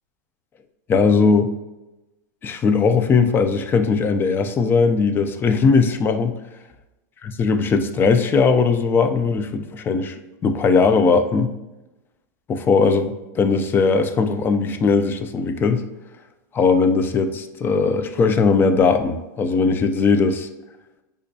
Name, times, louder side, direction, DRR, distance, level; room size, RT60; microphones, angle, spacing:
voice 1, 0.9-1.5 2.4-6.3 7.4-10.2 10.4-11.5 12.5-15.8 16.5-20.5, left 4 dB, 20° left, 8 dB, 0.3 m, -19 dB
5.0 x 2.2 x 2.6 m, 1.0 s
hypercardioid pair, 120°, 10 cm